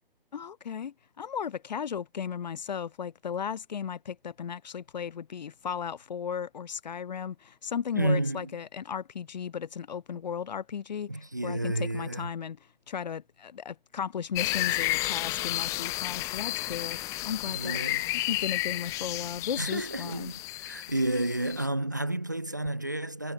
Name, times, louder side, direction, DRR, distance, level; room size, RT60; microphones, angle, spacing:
voice 1, 0.3-12.6 12.9-17.8 18.1-20.3, left 7 dB, 45° left, 1.1 m, -35 dB
voice 2, 7.9-8.5 11.1-12.3 17.5-18.1 19.6-23.3, right 1 dB, 20° right, 0.3 m, -31 dB
sound 1, 14.3-21.7, left 19 dB, 10° left, 0.7 m, -32 dB
figure-of-eight pair, 135°, 30 cm